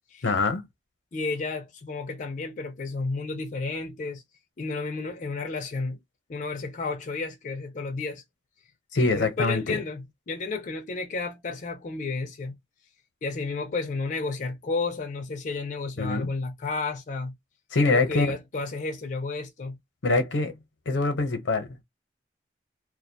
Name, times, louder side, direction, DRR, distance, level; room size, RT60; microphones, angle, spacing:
voice 1, 0.2-0.6 8.9-9.8 16.0-16.3 17.7-18.3 20.0-20.6 20.9-21.8, left 3 dB, 85° left, 0.7 m, -24 dB
voice 2, 1.1-4.2 4.6-6.0 6.3-8.2 9.1-12.6 13.2-17.4 17.8-19.8, left 3 dB, 45° left, 0.4 m, -32 dB
2.3 x 2.1 x 2.6 m
head